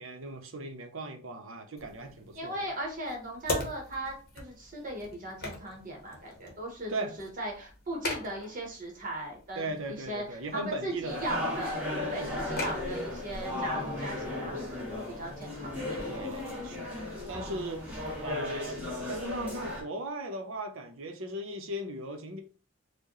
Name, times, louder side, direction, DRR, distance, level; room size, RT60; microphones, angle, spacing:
voice 1, 0.0-2.7 6.9-7.1 9.6-11.3 12.1-12.4 16.1-16.9 17.3-18.8 19.1-22.4, right 1 dB, 70° right, 0.6 m, -38 dB
sound 1, 1.8-19.4, left 2 dB, 45° left, 0.9 m, -43 dB
voice 2, 2.3-11.8 12.1-16.0, right 1 dB, 40° right, 0.9 m, -38 dB
sound 2, 11.0-19.8, left 1 dB, 5° right, 1.1 m, -35 dB
4.6 x 2.1 x 3.0 m
head